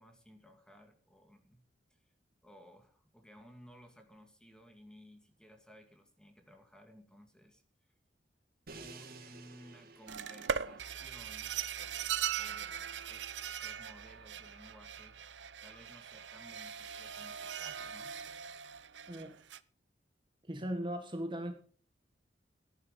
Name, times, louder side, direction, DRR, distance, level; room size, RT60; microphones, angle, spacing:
voice 1, 0.0-1.6 1.9-2.0 2.4-7.6 8.7-11.6 12.4-12.8 13.1-13.3 13.6-15.2 15.6-18.2, equal, 5° left, 2.4 m, -57 dB
Crash cymbal, 8.7-14.6, right 3 dB, 55° right, 3.0 m, -56 dB
sound 1, 10.1-19.6, right 8 dB, 75° right, 0.8 m, -40 dB
voice 2, 19.1-19.4 20.4-21.5, equal, 25° right, 1.5 m, -38 dB
14.0 x 11.0 x 5.2 m
head